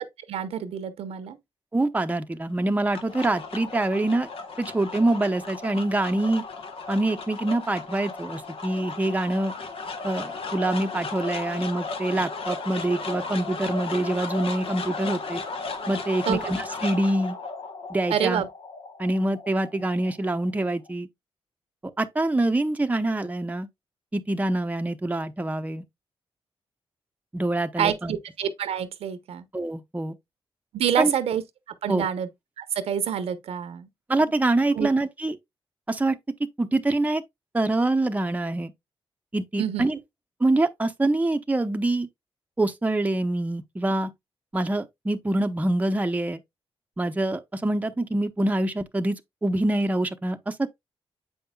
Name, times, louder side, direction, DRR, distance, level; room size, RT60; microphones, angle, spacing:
voice 1, 0.3-1.4 16.3-16.4 18.1-18.5 27.8-29.4 30.7-31.4 31.8-32.3 32.6-33.9 34.8-34.9 39.6-39.8, right 9 dB, 85° right, 0.8 m, -27 dB
voice 2, 1.7-4.3 4.6-6.4 6.9-9.5 10.0-15.4 15.9-17.4 17.9-18.4 19.0-21.1 22.0-23.7 24.1-25.8 27.3-28.1 29.5-30.2 31.0-31.1 31.9-32.1 34.1-35.4 35.9-36.2 36.6-37.2 37.5-38.7 39.3-40.0 40.4-42.1 42.6-44.1 44.5-46.4 47.0-50.7, right 2 dB, 15° right, 0.7 m, -25 dB
sound 1, 2.6-20.9, left 4 dB, 70° left, 1.1 m, -35 dB
7.7 x 5.4 x 2.3 m
cardioid pair, 75°, 10 cm